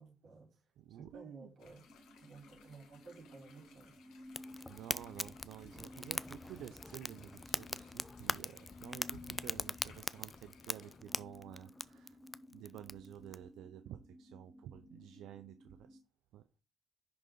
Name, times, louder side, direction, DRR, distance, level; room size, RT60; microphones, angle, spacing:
voice 1, 0.0-0.6 0.9-1.8 2.2-3.9, right 3 dB, 60° right, -1 dB, 4.7 m, -55 dB
voice 2, 0.8-1.5 4.7-12.2 12.5-16.0 16.3-16.4, right 11 dB, 85° right, 10 dB, 0.5 m, -51 dB
sound 1, 1.6-11.0, left 6 dB, 85° left, 1.8 m, -64 dB
sound 2, 1.9-16.0, left 2 dB, ahead, 1.3 m, -56 dB
Fire, 4.3-13.4, left 2 dB, 20° left, 0.3 m, -42 dB
10.5 x 3.8 x 3.9 m, 0.32 s
cardioid pair, 90°, 0 cm